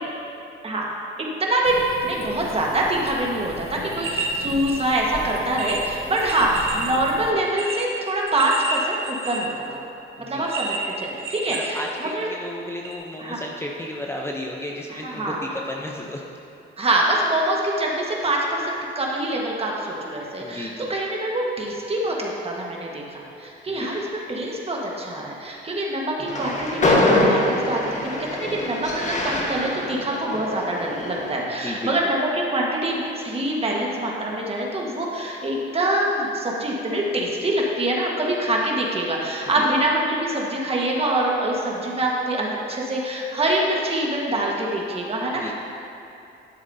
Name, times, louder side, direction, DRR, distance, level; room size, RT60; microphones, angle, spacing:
voice 1, 1.4-9.8 10.2-12.3 13.2-13.4 15.0-15.4 16.8-45.5, right 1 dB, 30° right, -2 dB, 1.4 m, -25 dB
sound 1, 1.6-7.3, left 4 dB, 55° left, 0.7 m, -39 dB
sound 2, 3.8-4.8 5.2-5.3 5.6-6.9 7.4-9.6 10.4-12.2 12.8-12.9, right 3 dB, 70° right, 1.0 m, -30 dB
voice 2, 11.5-16.2 20.4-20.9 23.7-23.9 31.5-32.1 39.5-39.7 45.3-45.5, left 1 dB, 10° left, -1 dB, 0.7 m, -33 dB
Train, 26.2-31.5, left 2 dB, 40° left, 1.3 m, -24 dB
12.0 x 7.2 x 2.7 m, 2.8 s
cardioid pair, 90°, 20 cm